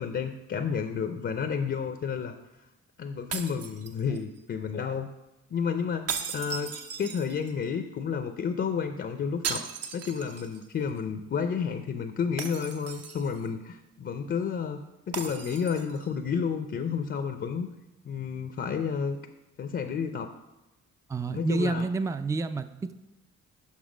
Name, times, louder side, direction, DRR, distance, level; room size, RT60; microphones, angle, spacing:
voice 1, 0.0-2.3 3.0-5.1 5.5-17.7 18.0-19.2 19.6-20.3 21.3-21.9, left 6 dB, 40° left, 7 dB, 0.5 m, -31 dB
sound 1, 3.3-4.4 6.1-7.6 9.4-10.7 11.0-11.1 12.4-13.5 15.1-16.1, right 6 dB, 55° right, 0.7 m, -37 dB
voice 2, 21.1-22.9, right 3 dB, 10° right, 11 dB, 0.3 m, -28 dB
7.3 x 5.8 x 5.0 m, 0.97 s
cardioid pair, 90°, 30 cm